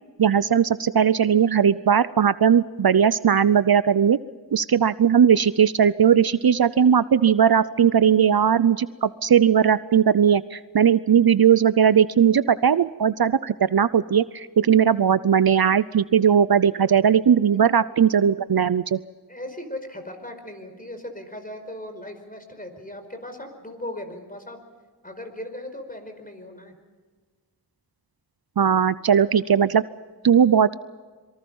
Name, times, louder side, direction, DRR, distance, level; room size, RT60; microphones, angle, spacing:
voice 1, 0.2-4.2 4.5-19.0 28.6-29.8 30.2-30.7, right 8 dB, 60° right, 16 dB, 0.7 m, -18 dB
voice 2, 19.3-24.6 25.0-26.8, left 1 dB, 20° left, 6 dB, 5.0 m, -38 dB
26.0 x 23.5 x 5.5 m, 1.4 s
wide cardioid pair, 50°, 40 cm